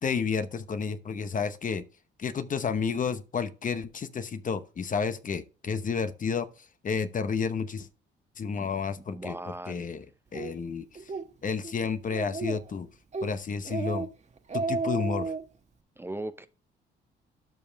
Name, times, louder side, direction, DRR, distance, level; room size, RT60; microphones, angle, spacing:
voice 1, 0.0-1.8 2.2-6.5 6.8-7.9 8.4-9.4 9.7-10.1 10.3-11.0 11.4-12.9 13.2-14.1 14.5-15.3, left 5 dB, 40° left, 0.9 m, -31 dB
voice 2, 8.6-9.9 16.0-16.5, right 1 dB, 10° right, 0.7 m, -39 dB
Speech, 10.3-10.5 11.0-11.3 11.6-11.7 12.1-12.7 13.1-13.3 13.7-14.1 14.4-15.4, right 3 dB, 35° right, 1.3 m, -32 dB
12.0 x 5.4 x 3.4 m
cardioid pair, 90°, 20 cm